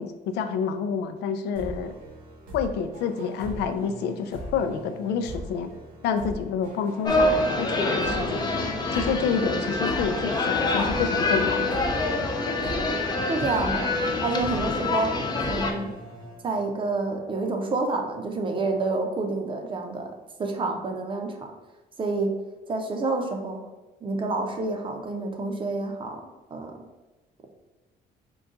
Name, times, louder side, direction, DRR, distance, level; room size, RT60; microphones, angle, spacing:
voice 1, 0.0-1.9 2.5-5.7 6.0-8.5 8.9-11.8, left 6 dB, 80° left, 8 dB, 0.4 m, -28 dB
sound 1, 1.6-17.0, equal, 85° right, 1.3 m, -40 dB
sound 2, 7.0-15.7, left 2 dB, 25° left, 0.5 m, -26 dB
voice 2, 13.3-13.9 14.2-15.1 15.5-15.9 16.4-20.1 20.4-21.3 22.0-22.3 22.7-23.6 24.0-26.2 26.5-26.8, right 3 dB, 30° right, 3 dB, 0.6 m, -28 dB
3.9 x 2.3 x 3.7 m, 1.1 s
cardioid pair, 110°, 17 cm